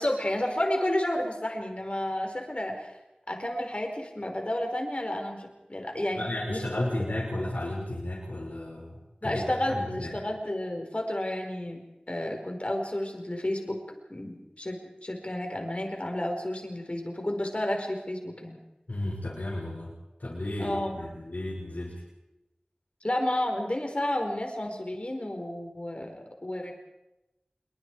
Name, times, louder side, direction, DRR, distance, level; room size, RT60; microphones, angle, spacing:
voice 1, 0.0-3.0 3.3-6.6 7.0-7.1 9.2-11.8 12.1-13.8 14.1-18.6 20.6-20.9 23.0-26.7, left 1 dB, 45° left, 3 dB, 5.0 m, -31 dB
voice 2, 6.1-10.1 18.9-19.9 20.2-22.0, left 1 dB, 80° left, -5 dB, 6.2 m, -33 dB
26.5 x 23.5 x 4.9 m, 0.97 s
wide cardioid pair, 40°, 3 cm